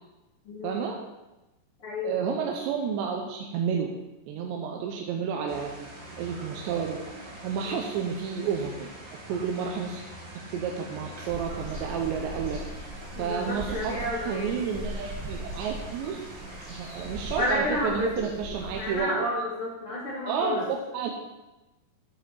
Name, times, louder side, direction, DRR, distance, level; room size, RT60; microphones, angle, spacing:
voice 1, 0.6-1.0 2.0-3.9 4.3-5.7 6.2-7.0 7.4-8.9 9.3-10.0 10.5-12.6 13.2-14.0 14.2-16.2 16.7-19.3 20.2-21.1, right 6 dB, 90° right, 1 dB, 3.1 m, -30 dB
voice 2, 1.8-2.2 7.6-7.8 13.2-14.5 17.4-20.6, left 1 dB, 85° left, -5 dB, 1.2 m, -31 dB
sound 1, 5.5-17.5, right 1 dB, 45° right, 1.5 m, -44 dB
sound 2, 11.3-19.0, right 1 dB, 15° right, 1.8 m, -40 dB
10.0 x 5.1 x 5.8 m, 1.0 s
omnidirectional pair, 4.9 m